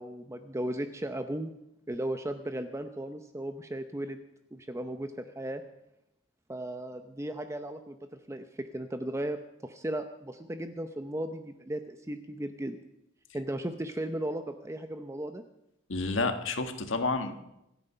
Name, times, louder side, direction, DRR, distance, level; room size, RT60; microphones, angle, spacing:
voice 1, 0.0-1.5 1.9-4.2 4.5-5.6 6.5-8.0 8.3-12.8 13.3-15.4, right 1 dB, 15° right, 7 dB, 0.7 m, -36 dB
voice 2, 15.9-17.4, left 3 dB, 75° left, 7 dB, 1.6 m, -30 dB
26.0 x 9.1 x 5.6 m, 0.86 s
head